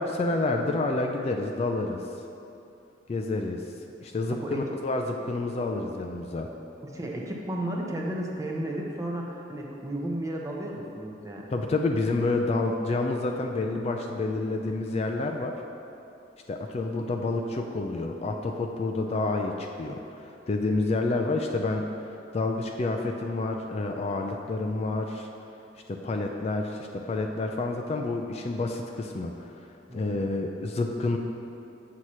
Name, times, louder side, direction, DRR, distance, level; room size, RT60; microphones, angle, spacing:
voice 1, 0.0-2.0 3.1-3.6 4.0-6.5 11.5-15.6 16.5-21.9 22.3-25.3 25.9-29.5 29.9-31.2, left 2 dB, 35° left, 3 dB, 0.3 m, -29 dB
voice 2, 6.8-11.5 29.9-30.2, right 1 dB, 20° right, -1 dB, 0.6 m, -33 dB
7.9 x 2.9 x 6.0 m, 2.8 s
head